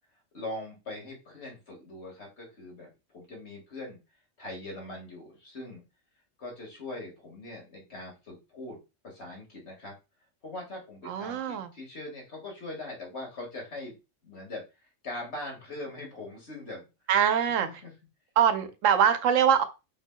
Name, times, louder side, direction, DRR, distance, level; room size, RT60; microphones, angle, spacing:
voice 1, 0.3-4.0 4.4-5.8 6.4-8.8 9.0-9.9 10.4-13.9 14.2-14.6 15.0-16.9 17.6-17.9, left 2 dB, 60° left, 2.1 m, -41 dB
voice 2, 11.1-11.7 17.1-17.7 18.4-19.6, right 8 dB, 85° right, 1.0 m, -23 dB
5.2 x 4.4 x 2.2 m
omnidirectional pair, 1.3 m